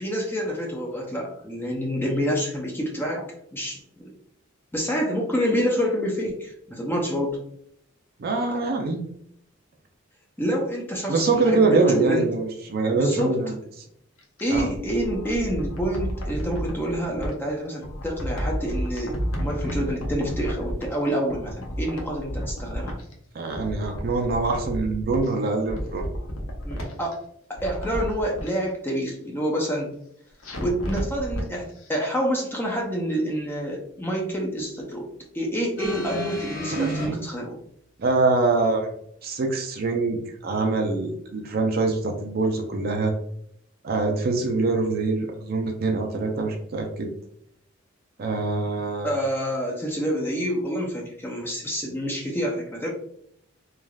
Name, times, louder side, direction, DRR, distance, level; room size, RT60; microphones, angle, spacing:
voice 1, 0.0-4.1 4.7-7.4 10.4-12.3 12.9-13.4 14.4-23.0 26.6-27.2 27.5-29.9 30.5-35.1 35.3-37.6 49.0-52.9, equal, 10° left, -1 dB, 0.5 m, -27 dB
voice 2, 8.2-9.0 11.1-13.5 14.5-14.7 23.3-26.0 36.7-37.2 38.0-38.9 39.2-43.1 43.8-47.1 48.2-49.2, right 3 dB, 50° right, 3 dB, 0.4 m, -24 dB
sound 1, 14.2-17.3 17.8-21.0 21.3-23.1 23.4-25.3 25.6-27.1 27.5-28.5 30.4-31.5 31.8-31.9, equal, 85° left, 0.7 m, -32 dB
sound 2, 35.8-37.1 38.1-38.2, left 1 dB, 45° left, 1.4 m, -31 dB
3.3 x 2.4 x 2.2 m, 0.70 s
head